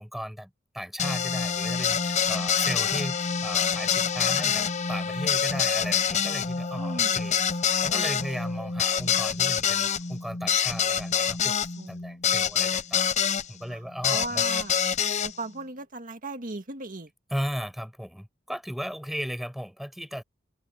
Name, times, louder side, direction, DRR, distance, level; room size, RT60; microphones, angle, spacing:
voice 1, 0.0-11.6 11.9-14.4 17.3-20.2, equal, ahead, 6.0 m, -36 dB
sound 1, 1.0-13.4 14.0-15.3, left 7 dB, 35° left, 0.7 m, -26 dB
voice 2, 2.4-2.9 6.8-7.3 11.8-11.9 13.7-14.7 15.2-17.1, right 2 dB, 45° right, 2.1 m, -38 dB
head